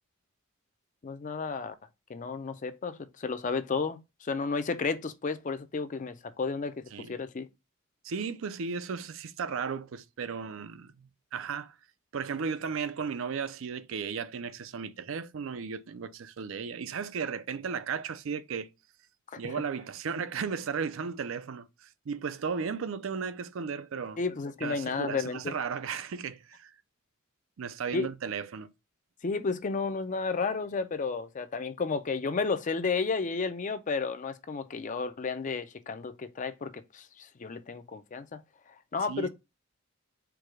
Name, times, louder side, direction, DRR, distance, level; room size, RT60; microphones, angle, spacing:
voice 1, 1.0-1.7 2.1-7.5 19.3-19.6 24.2-25.5 27.9-28.1 29.2-38.4 38.9-39.3, left 4 dB, 35° left, 0.4 m, -32 dB
voice 2, 8.0-11.7 12.1-18.7 19.4-24.2 24.6-26.7 27.6-28.7 39.1-39.3, right 6 dB, 65° right, 0.4 m, -35 dB
4.6 x 2.2 x 4.7 m
head